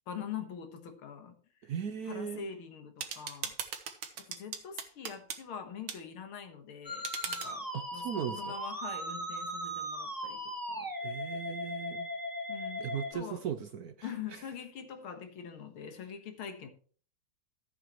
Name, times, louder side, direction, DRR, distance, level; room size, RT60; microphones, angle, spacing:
voice 1, 0.1-1.7 2.1-3.5 4.2-10.9 12.5-13.4 14.0-16.7, left 7 dB, 90° left, 2.3 m, -44 dB
voice 2, 1.6-2.5 7.7-8.6 11.0-12.1 12.8-14.1, right 8 dB, 65° right, 1.0 m, -38 dB
sound 1, 3.0-5.4 5.9-6.0 7.0-7.5, right 7 dB, 85° right, 2.1 m, -39 dB
Musical instrument, 6.8-13.1, equal, 10° right, 1.4 m, -38 dB
14.5 x 7.9 x 3.1 m
omnidirectional pair, 2.2 m